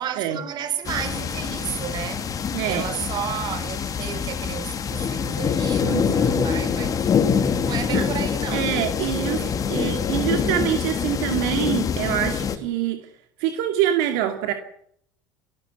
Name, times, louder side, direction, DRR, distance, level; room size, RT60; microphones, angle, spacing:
voice 1, 0.0-7.1 7.6-8.7 9.0-9.6, right 9 dB, 50° right, 3.8 m, -32 dB
sound 1, 0.8-12.6, left 7 dB, 40° left, 2.8 m, -25 dB
voice 2, 5.8-6.4 7.6-8.0 8.5-9.4 9.7-13.1 13.4-14.5, right 12 dB, 75° right, 2.4 m, -25 dB
25.5 x 13.5 x 8.4 m
supercardioid pair, 85°, 9 cm